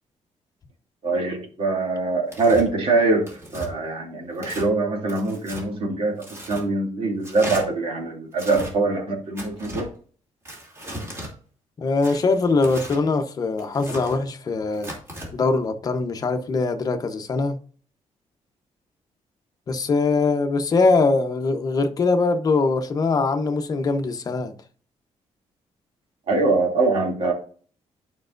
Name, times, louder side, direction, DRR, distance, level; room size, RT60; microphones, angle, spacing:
voice 1, 1.0-3.2 3.5-9.9 26.3-27.3, right 3 dB, 55° right, 2.7 m, -23 dB
Tearing, 2.3-2.7 3.3-3.7 4.3-4.7 5.1-5.6 6.2-6.6 7.2-7.6 8.3-8.7 9.4-9.9 10.4-11.3 12.0-13.0 13.6-14.2 14.7-15.3, equal, 25° right, 2.8 m, -36 dB
voice 2, 11.8-14.9 15.3-17.6 19.7-24.5, left 3 dB, 35° left, 0.9 m, -22 dB
11.5 x 5.4 x 2.6 m
wide cardioid pair, 170°, 12 cm